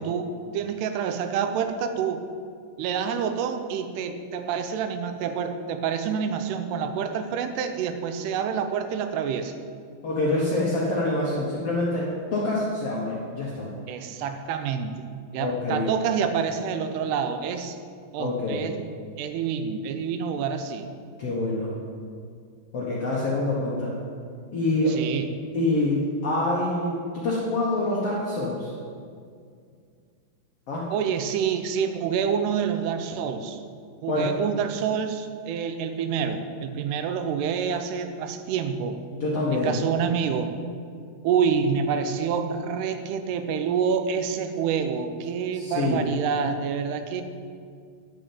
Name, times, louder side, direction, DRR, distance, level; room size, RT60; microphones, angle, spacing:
voice 1, 0.0-2.2 2.8-9.5 13.9-15.1 15.3-17.8 18.1-18.8 19.2-20.9 24.9-25.3 30.9-33.6 34.0-39.0 39.5-40.5 41.2-47.2, right 7 dB, 85° right, 8 dB, 2.8 m, -27 dB
voice 2, 10.0-13.7 15.4-15.9 18.2-18.7 21.2-21.7 22.7-23.9 24.5-25.0 25.5-28.7 30.7-30.9 34.1-34.3 39.2-39.8 45.5-46.0, left 2 dB, 60° left, -5 dB, 1.6 m, -26 dB
10.5 x 6.2 x 8.6 m, 2.2 s
omnidirectional pair, 4.7 m